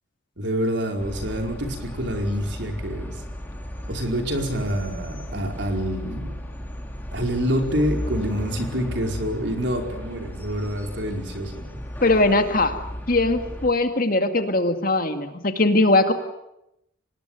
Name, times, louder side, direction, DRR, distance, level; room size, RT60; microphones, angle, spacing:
voice 1, 0.4-3.1 3.9-6.4 7.1-11.8, equal, 60° right, 3 dB, 4.9 m, -27 dB
sound 1, 1.0-13.7, equal, 10° left, 3.1 m, -35 dB
voice 2, 12.0-12.7 13.1-16.1, left 2 dB, 45° left, 7 dB, 2.2 m, -20 dB
25.5 x 20.5 x 9.4 m, 0.84 s
head